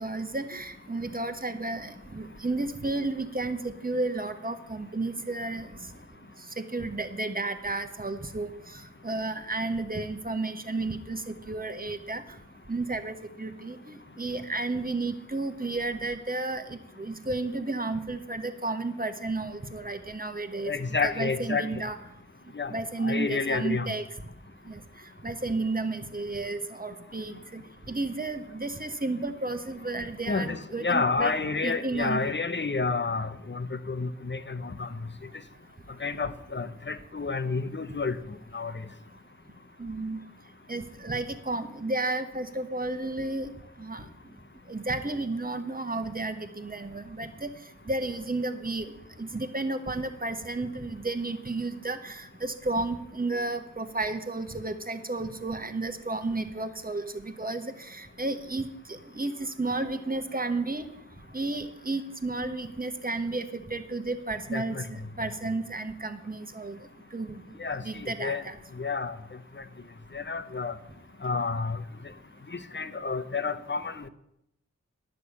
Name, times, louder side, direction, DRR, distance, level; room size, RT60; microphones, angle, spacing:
voice 1, 0.0-5.7 6.6-8.5 9.0-12.2 12.7-20.7 21.0-22.0 22.7-24.0 24.7-24.8 25.2-27.6 27.9-31.3 31.6-32.2 39.8-40.2 40.7-43.5 43.8-44.0 44.7-47.5 47.9-48.9 49.2-60.8 61.3-66.8 67.1-67.4 67.8-68.5, right 2 dB, 30° right, 7 dB, 1.2 m, -32 dB
voice 2, 20.6-21.8 22.5-22.7 23.0-23.9 30.3-34.9 36.0-38.2 38.5-38.7 64.5-64.8 67.6-68.4 68.8-69.2 70.1-70.7 71.2-71.8 72.5-74.1, left 4 dB, 35° left, 11 dB, 0.8 m, -30 dB
11.0 x 6.5 x 8.3 m, 0.80 s
wide cardioid pair, 45°, 31 cm